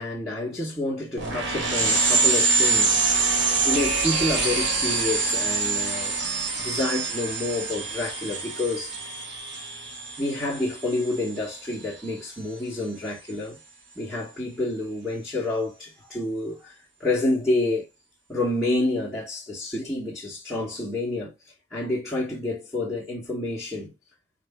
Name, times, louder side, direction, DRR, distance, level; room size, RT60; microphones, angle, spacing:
voice 1, 0.0-3.1 3.6-6.2 6.6-8.9 10.2-13.6 14.0-17.9 18.3-21.3 21.7-23.9, left 2 dB, ahead, 1.2 m, -28 dB
sound 1, 1.2-11.3, right 3 dB, 85° right, 1.8 m, -25 dB
4.7 x 2.7 x 3.4 m
head